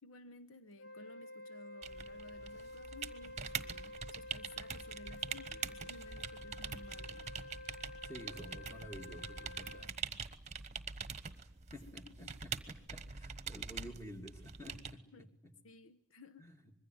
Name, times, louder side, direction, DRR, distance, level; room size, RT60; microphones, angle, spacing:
voice 1, 0.0-7.4 11.9-12.3 15.1-15.3 15.6-16.5, left 2 dB, 80° left, 12 dB, 1.0 m, -56 dB
Wind instrument woodwind instrument, 0.8-9.9, left 2 dB, 55° left, 2.3 m, -50 dB
sound 1, 1.8-15.0, right 6 dB, 35° right, 1.2 m, -44 dB
voice 2, 8.0-9.9 11.7-15.5 16.4-16.6, equal, 15° left, 4 dB, 2.5 m, -51 dB
25.5 x 21.5 x 9.4 m, 0.70 s
head